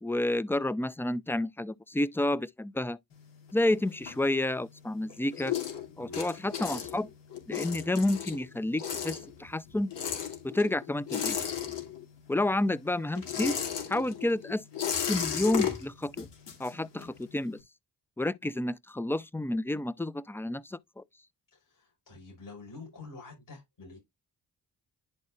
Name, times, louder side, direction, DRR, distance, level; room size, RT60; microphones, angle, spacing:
voice 1, 0.0-3.0 3.5-5.6 6.0-7.1 7.5-9.9 10.4-11.4 12.3-13.6 13.9-14.6 15.1-16.3 16.6-17.6 18.2-21.0, left 1 dB, 5° left, 0.5 m, -30 dB
sound 1, 3.1-4.7 5.0-12.3 12.5-17.2, left 8 dB, 80° left, 2.8 m, -35 dB
voice 2, 21.5-24.0, left 3 dB, 50° left, 5.5 m, -48 dB
11.0 x 4.2 x 2.4 m
supercardioid pair, 50°, 41 cm